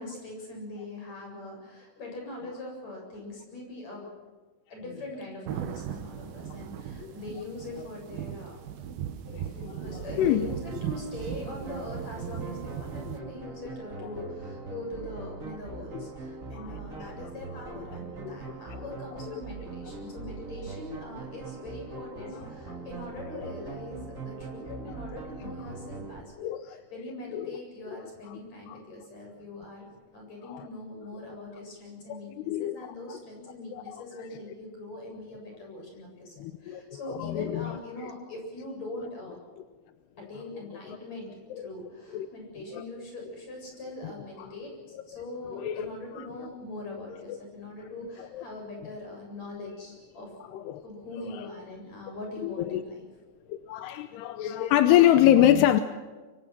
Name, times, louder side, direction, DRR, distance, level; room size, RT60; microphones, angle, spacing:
voice 1, 0.0-4.1 4.7-8.6 9.8-39.4 40.2-50.3 50.8-53.1, left 2 dB, 35° left, 8.8 m, -42 dB
sound 1, 5.5-13.2, right 10 dB, 70° right, 2.4 m, -38 dB
voice 2, 9.3-10.5 16.5-16.6 18.2-18.4 23.3-23.5 24.7-24.8 26.4-26.8 27.3-27.6 28.7-28.8 30.5-30.6 32.1-32.2 32.5-33.2 33.7-33.8 36.4-36.8 37.2-37.8 41.5-41.7 42.1-42.3 42.7-42.8 45.5-45.9 46.2-46.3 47.3-47.4 48.3-48.4 50.7-50.8 52.4-52.8 53.5-55.8, left 12 dB, 75° left, 2.5 m, -25 dB
sound 2, 10.2-26.2, right 4 dB, 40° right, 1.1 m, -41 dB
27.0 x 24.0 x 6.1 m
omnidirectional pair, 5.6 m